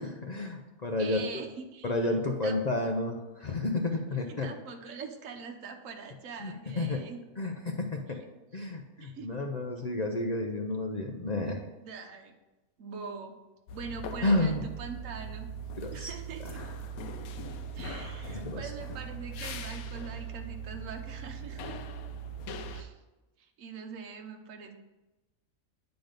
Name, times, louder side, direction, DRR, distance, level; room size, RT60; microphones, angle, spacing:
voice 1, 0.0-1.2 1.8-4.5 6.4-7.0 7.4-8.2 8.5-11.6 14.2-14.6 15.8-16.1 16.4-16.6 18.3-18.6, left 2 dB, 55° left, 2 dB, 0.4 m, -31 dB
voice 2, 1.0-1.9 2.4-2.6 4.3-7.2 8.5-8.6 9.0-9.5 11.8-12.3 12.8-13.4 13.7-15.5 15.9-16.6 17.7-21.8 22.7-23.0 23.4-24.7, right 5 dB, 70° right, 4 dB, 1.2 m, -43 dB
sound 1, 13.7-22.8, right 4 dB, 85° left, 1.1 m, -40 dB
8.9 x 4.0 x 5.1 m, 1.1 s
omnidirectional pair, 1.5 m